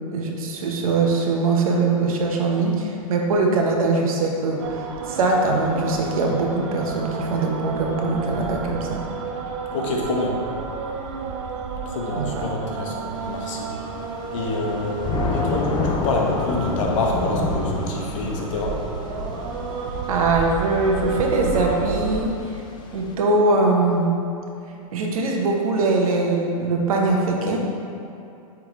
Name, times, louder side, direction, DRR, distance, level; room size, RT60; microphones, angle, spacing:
voice 1, 0.1-9.0 12.2-12.4 20.1-22.3 22.9-24.1 24.9-27.6, right 3 dB, 70° right, 0 dB, 1.1 m, -22 dB
sound 1, 4.6-22.3, right 5 dB, 50° right, 0.6 m, -31 dB
voice 2, 9.7-10.4 11.9-13.7 14.3-18.8, left 2 dB, 60° left, -1 dB, 1.2 m, -27 dB
Thunder / Rain, 13.2-23.1, left 4 dB, 25° left, 0.5 m, -30 dB
8.4 x 3.6 x 3.2 m, 2.6 s
hypercardioid pair, 125°, 19 cm